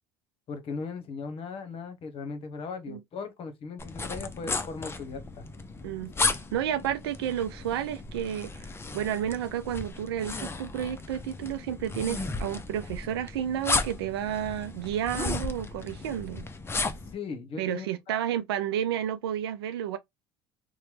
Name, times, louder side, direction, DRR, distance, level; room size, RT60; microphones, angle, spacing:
voice 1, 0.5-5.5 6.1-6.4 17.1-18.2, left 4 dB, 50° left, 1.0 m, -38 dB
sound 1, 3.8-17.1, left 3 dB, 20° left, 0.6 m, -34 dB
voice 2, 6.5-8.6 8.9-16.5 17.6-20.0, right 10 dB, 90° right, 0.5 m, -31 dB
3.0 x 2.2 x 3.1 m
hypercardioid pair, 80°, 13 cm